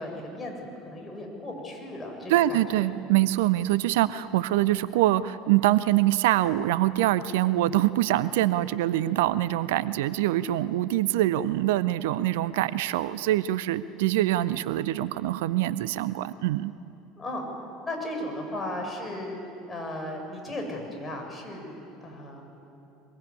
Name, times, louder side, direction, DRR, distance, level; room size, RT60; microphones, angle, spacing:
voice 1, 0.0-2.9 17.2-17.5 17.8-19.4 19.7-22.4, left 1 dB, 20° left, 1 dB, 7.2 m, -36 dB
voice 2, 2.3-16.7, right 14 dB, 65° right, 17 dB, 0.6 m, -24 dB
23.0 x 22.0 x 9.8 m, 2.9 s
figure-of-eight pair, 70°, 0 cm